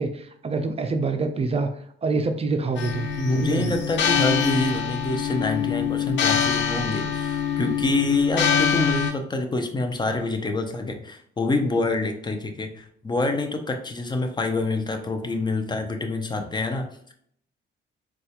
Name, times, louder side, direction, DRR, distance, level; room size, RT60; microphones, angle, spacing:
voice 1, 0.0-1.7 2.0-3.1 3.4-3.7, right 3 dB, 30° right, 7 dB, 0.4 m, -26 dB
sound 1, 2.8-9.1, left 7 dB, 65° left, 0.6 m, -24 dB
voice 2, 3.2-17.1, left 2 dB, 20° left, 5 dB, 0.6 m, -26 dB
4.1 x 2.3 x 2.8 m, 0.65 s
cardioid pair, 90°, 20 cm